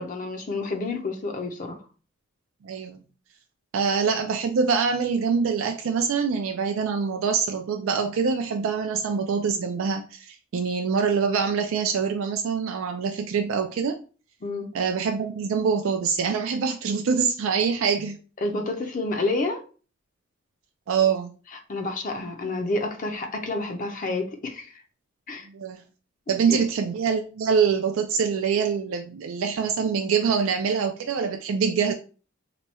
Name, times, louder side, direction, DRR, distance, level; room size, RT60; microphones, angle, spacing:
voice 1, 0.0-1.8 14.4-14.7 18.4-19.6 21.7-24.8 25.3-25.5 26.5-26.6, left 2 dB, 40° left, 0.5 m, -29 dB
voice 2, 2.6-3.0 3.7-14.0 14.7-18.2 20.9-21.3 25.5-25.8 26.3-31.9, right 6 dB, 80° right, 0.4 m, -25 dB
3.0 x 2.3 x 4.1 m
head